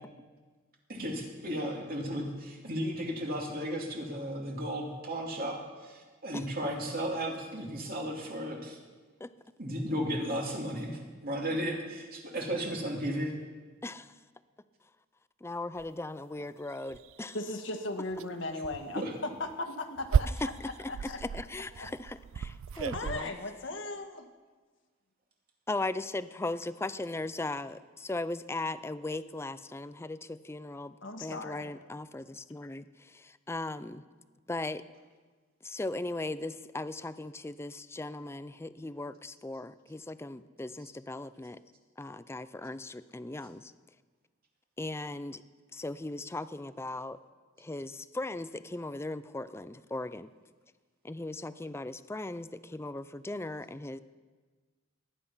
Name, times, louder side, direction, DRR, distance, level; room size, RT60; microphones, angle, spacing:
voice 1, 0.9-5.6 5.8-8.8 9.6-13.3 18.9-19.1, equal, 50° right, 0 dB, 2.7 m, -34 dB
voice 2, 13.8-14.1 15.4-17.4 20.4-23.3 25.7-34.0 34.5-34.8 35.6-41.6 42.0-43.7 44.8-45.4 45.7-47.2 47.6-50.3 51.0-54.0, left 2 dB, 15° left, 14 dB, 0.4 m, -38 dB
sound 1, 15.8-15.9 16.4-16.5 16.9-17.3 18.1-18.3 18.6-18.8 19.5-23.2, right 7 dB, 85° right, 0.4 m, -33 dB
voice 3, 17.3-20.5 20.9-21.2 21.8-21.9 22.9-24.3 31.0-31.7, left 2 dB, 70° left, 5 dB, 1.6 m, -37 dB
19.5 x 10.0 x 5.7 m, 1.4 s
head